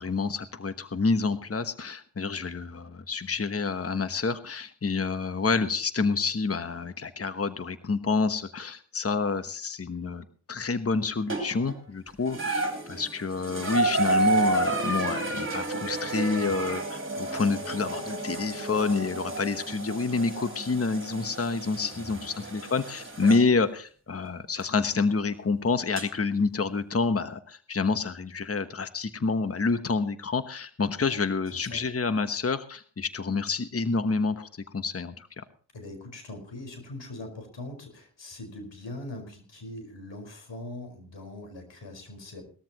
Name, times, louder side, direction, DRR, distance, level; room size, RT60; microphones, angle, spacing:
voice 1, 0.0-35.4, left 4 dB, 30° left, 10 dB, 1.2 m, -28 dB
sound 1, 11.3-11.8 12.3-23.5 24.6-24.7 26.0-26.1, right 3 dB, 25° right, 3.5 m, -31 dB
voice 2, 21.9-22.4 31.5-31.8 35.7-42.4, left 2 dB, 70° left, 4 dB, 5.0 m, -42 dB
19.5 x 13.5 x 3.0 m, 0.43 s
cardioid pair, 45°, 45 cm